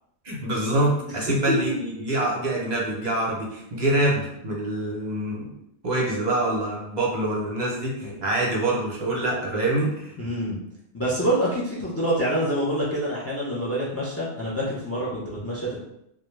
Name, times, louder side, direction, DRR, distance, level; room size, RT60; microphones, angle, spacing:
voice 1, 0.2-5.5 5.8-10.1, right 1 dB, 45° right, -3 dB, 0.6 m, -25 dB
voice 2, 1.1-1.8 10.2-10.6 10.9-15.8, right 1 dB, 25° left, -6 dB, 0.3 m, -26 dB
2.4 x 2.2 x 3.1 m, 0.77 s
omnidirectional pair, 1.3 m